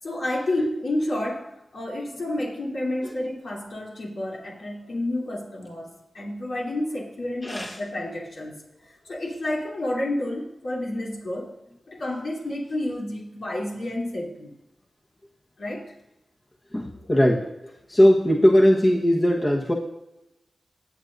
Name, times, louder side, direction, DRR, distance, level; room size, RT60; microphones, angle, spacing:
voice 1, 0.0-11.5 11.9-14.5 15.6-15.9, left 1 dB, 75° left, -4 dB, 3.1 m, -30 dB
voice 2, 7.4-7.8 16.7-17.5 17.9-19.7, equal, 30° left, -2 dB, 1.3 m, -19 dB
18.5 x 7.8 x 2.7 m, 0.91 s
cardioid pair, 45°, 0 cm